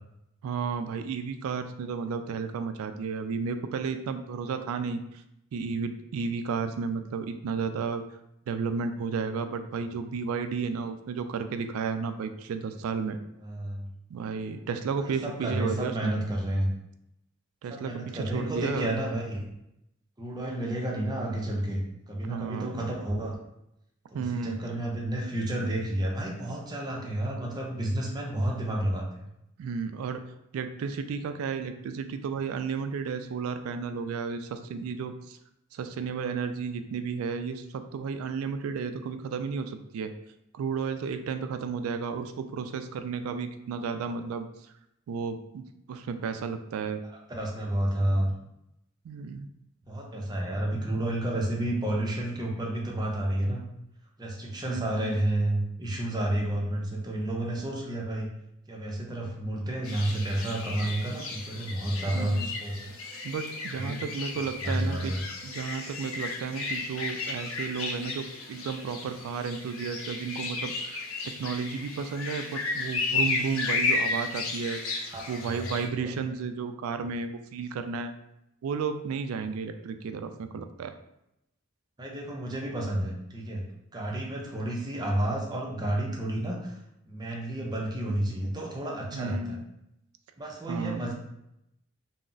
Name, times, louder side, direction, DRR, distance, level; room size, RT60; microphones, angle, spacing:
voice 1, 0.4-5.2 5.5-8.0 8.5-13.2 14.1-16.2 17.6-18.9 22.2-22.8 24.1-24.6 29.6-30.2 30.5-35.4 35.7-40.1 40.5-44.5 45.1-47.0 49.0-49.5 54.7-55.1 62.1-62.5 63.2-65.2 65.4-78.1 78.6-80.9 89.1-89.6 90.7-91.1, right 5 dB, 85° right, 13 dB, 0.3 m, -33 dB
voice 2, 13.4-13.9 15.0-16.7 17.7-19.5 20.2-23.4 24.1-29.2 47.3-48.3 49.9-53.6 54.2-58.3 58.7-62.9 63.7-64.0 64.6-65.2 75.1-75.7 76.0-76.1 82.0-83.6 83.9-86.8 87.1-89.6 90.4-91.1, right 1 dB, 20° right, -1 dB, 0.5 m, -30 dB
sound 1, 59.8-75.9, left 3 dB, 75° left, 0.6 m, -34 dB
2.3 x 2.0 x 3.8 m, 0.83 s
head